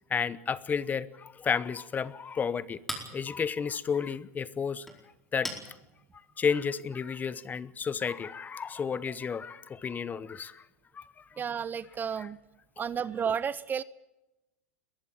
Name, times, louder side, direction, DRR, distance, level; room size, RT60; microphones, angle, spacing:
voice 1, 0.1-4.9 5.3-5.6 6.4-10.6 10.9-11.4 12.2-12.3, left 6 dB, 20° left, 18 dB, 0.9 m, -32 dB
Chink clink, 1.6-7.1, equal, 5° left, 4.7 m, -45 dB
voice 2, 11.4-12.4 12.8-13.8, right 7 dB, 25° right, 19 dB, 0.6 m, -32 dB
22.0 x 14.5 x 9.1 m, 0.97 s
hypercardioid pair, 110°, 8 cm